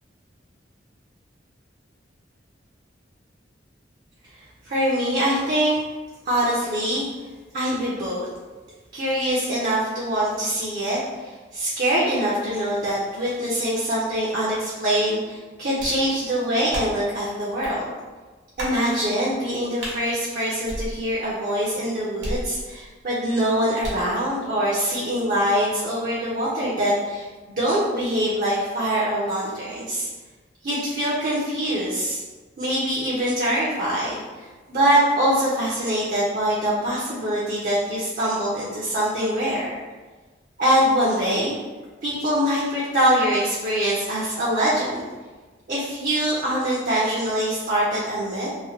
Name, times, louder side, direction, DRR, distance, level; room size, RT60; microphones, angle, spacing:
voice 1, 4.6-5.8 6.2-7.1 7.5-8.3 8.9-17.9 18.6-30.1 30.6-32.2 32.6-39.7 40.6-41.6 42.0-45.1 45.7-48.5, equal, 50° right, -6 dB, 0.5 m, -24 dB
sound 1, 15.8-16.1 16.7-17.1 17.6-17.8 18.6-18.8 19.8-20.0 20.7-21.3 22.2-22.9 23.8-24.1, equal, 75° right, 0.9 m, -33 dB
3.0 x 2.1 x 2.7 m, 1.3 s
head